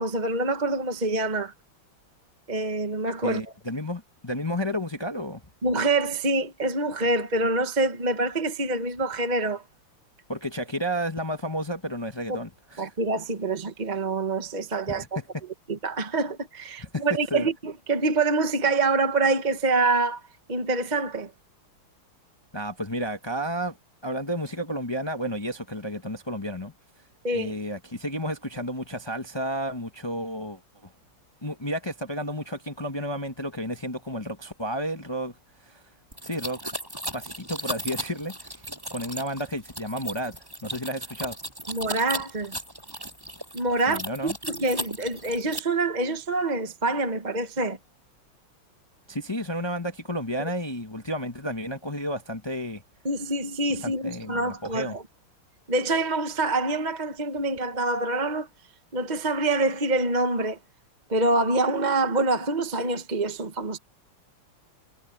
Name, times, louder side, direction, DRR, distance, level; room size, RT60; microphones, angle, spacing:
voice 1, 0.0-1.5 2.5-3.4 5.6-9.6 12.8-15.0 15.7-20.2 20.5-21.3 27.2-27.5 41.7-42.6 43.5-47.8 50.4-50.5 53.0-55.0 55.7-58.5 58.9-60.6 61.1-63.8, right 2 dB, 25° right, 1.1 m, -26 dB
voice 2, 3.2-5.4 10.3-12.9 14.9-15.2 16.8-17.0 17.3-17.5 22.5-23.8 24.0-26.7 27.3-30.9 31.4-35.4 35.6-35.8 36.2-36.6 37.1-41.4 43.9-44.4 49.1-52.8 53.8-55.0, equal, 25° left, 0.6 m, -32 dB
sound 1, 36.1-45.6, right 1 dB, 10° right, 7.6 m, -36 dB
omnidirectional pair, 2.4 m